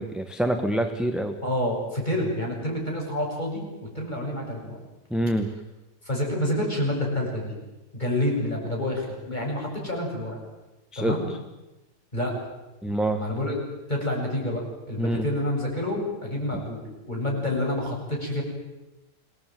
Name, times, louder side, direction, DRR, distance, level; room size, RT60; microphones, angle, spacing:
voice 1, 0.0-1.3 5.1-5.5 10.9-11.2 12.8-13.2 15.0-15.2, right 1 dB, ahead, 6 dB, 1.3 m, -26 dB
voice 2, 1.4-4.8 6.0-7.5 7.9-10.4 11.0-11.3 12.1-12.3 13.2-13.6 13.9-18.4, left 1 dB, 25° left, -1 dB, 8.2 m, -28 dB
26.5 x 19.5 x 9.3 m, 1.0 s
omnidirectional pair, 1.8 m